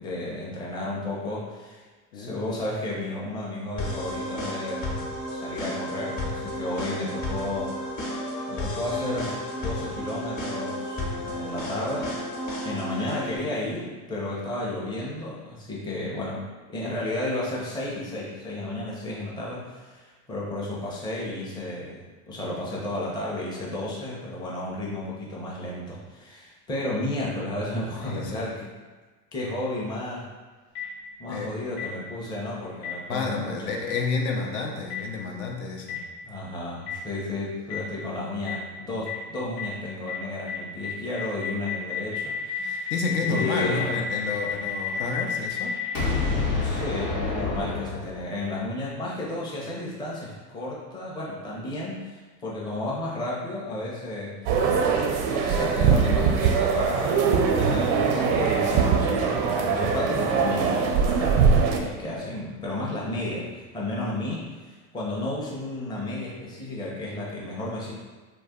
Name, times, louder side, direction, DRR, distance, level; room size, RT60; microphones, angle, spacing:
voice 1, 0.0-1.8 2.1-4.9 5.3-7.7 8.5-12.1 12.6-28.7 29.3-30.3 31.2-33.6 36.2-42.9 43.2-43.9 46.6-67.9, left 2 dB, 10° left, -5 dB, 0.5 m, -32 dB
sound 1, 3.8-13.4, left 1 dB, 35° left, 1.0 m, -32 dB
voice 2, 11.4-11.9 27.8-28.6 31.3-31.7 33.1-36.0 42.6-45.8, left 4 dB, 65° left, 1 dB, 0.7 m, -31 dB
Boom, 30.7-30.8 31.8-31.9 32.8-32.9 33.9-34.0 34.9-35.0 35.9-36.0 36.9-37.0 37.7-37.8 38.5-38.6 39.1-39.2 39.6-39.7 40.1-40.2 40.5-40.6 40.8-48.4, left 5 dB, 90° left, 1.2 m, -29 dB
sound 2, 54.5-61.8, right 6 dB, 40° right, 0.4 m, -22 dB
2.4 x 2.2 x 3.6 m, 1.3 s
hypercardioid pair, 90°, 47 cm